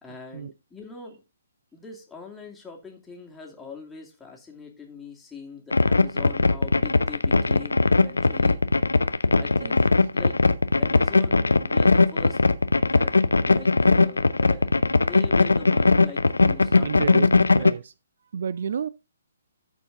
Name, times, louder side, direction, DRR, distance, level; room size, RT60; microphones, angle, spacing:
voice 1, 0.0-1.2 1.7-8.7 9.4-10.4 10.8-12.4 12.9-13.2 13.4-17.3 17.6-17.8, left 5 dB, 5° left, 2.4 m, -42 dB
sound 1, 5.7-17.7, left 3 dB, 75° left, 0.7 m, -19 dB
voice 2, 16.8-17.9 18.3-18.9, right 7 dB, 55° right, 0.4 m, -31 dB
13.5 x 4.6 x 3.7 m
figure-of-eight pair, 130°, 0 cm